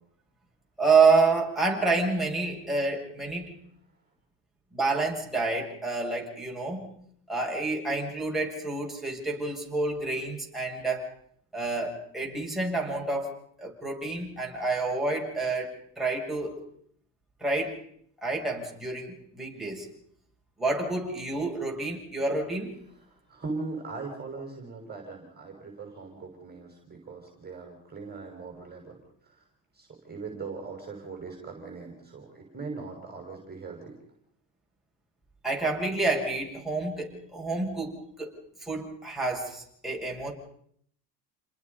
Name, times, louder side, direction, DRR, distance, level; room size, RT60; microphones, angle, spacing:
voice 1, 0.8-3.5 4.7-6.9 7.3-11.1 11.5-16.6 17.4-17.8 18.2-19.9 20.6-22.7 35.4-38.3 38.6-40.3, right 3 dB, ahead, -2 dB, 7.3 m, -28 dB
voice 2, 22.9-29.0 29.3-29.4 29.7-34.0, right 4 dB, 20° right, 2 dB, 5.8 m, -40 dB
29.5 x 21.0 x 5.5 m, 0.68 s
supercardioid pair, 100°, 48 cm